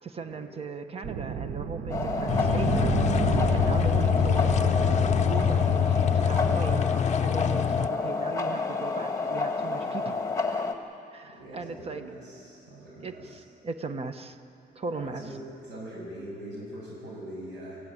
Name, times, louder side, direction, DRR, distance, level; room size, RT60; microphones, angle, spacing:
voice 1, 0.0-3.0 3.5-6.9 7.2-10.2 11.1-12.1 13.0-14.4 14.7-15.3, right 4 dB, 35° right, 8 dB, 1.2 m, -38 dB
sound 1, 1.0-6.8, right 6 dB, 60° right, 1.1 m, -31 dB
sound 2, 1.9-10.7, left 4 dB, 20° left, 1.6 m, -30 dB
sound 3, 2.3-7.9, left 9 dB, 40° left, 0.6 m, -25 dB
voice 2, 11.2-13.4 14.9-17.8, right 1 dB, 85° right, -4 dB, 7.8 m, -42 dB
27.5 x 15.5 x 8.8 m, 2.6 s
cardioid pair, 150°, 18 cm